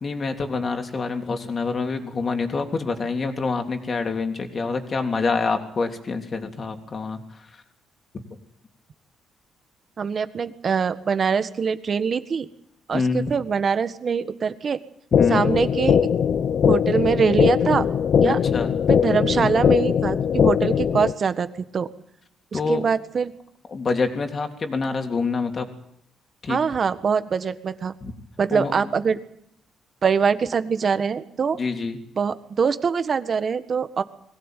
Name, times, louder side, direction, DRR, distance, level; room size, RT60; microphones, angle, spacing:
voice 1, 0.0-7.6 12.9-13.3 15.1-15.5 18.2-18.7 19.4-19.5 22.5-22.8 23.7-25.7 26.4-26.6 28.0-28.1 28.5-28.9 31.5-32.0, left 4 dB, 40° left, 5 dB, 3.3 m, -26 dB
voice 2, 10.0-12.5 12.9-14.8 15.3-16.0 16.7-17.9 18.2-18.4 18.9-21.9 22.5-23.3 26.5-27.9 28.4-29.2 30.0-31.6 32.2-34.0, right 6 dB, 45° right, 11 dB, 1.6 m, -23 dB
sound 1, 15.1-21.1, left 8 dB, 60° left, 0.9 m, -20 dB
22.0 x 17.0 x 9.3 m, 0.72 s
cardioid pair, 90°, 0 cm